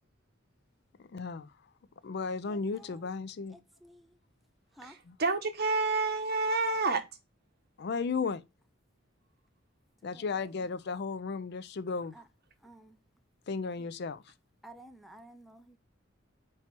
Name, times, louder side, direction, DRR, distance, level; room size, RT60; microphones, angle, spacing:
voice 1, 1.0-1.5 2.0-3.6 5.0-5.2 7.8-8.4 10.0-12.1 13.5-14.2, left 4 dB, 60° left, 0.4 m, -34 dB
voice 2, 2.5-2.9 3.8-4.1 4.8-5.0 10.1-10.2 12.1-12.2 12.6-13.0 14.6-15.8, right 1 dB, ahead, 0.5 m, -52 dB
voice 3, 4.8-7.0, right 3 dB, 55° right, 1.1 m, -29 dB
4.7 x 4.3 x 5.9 m
head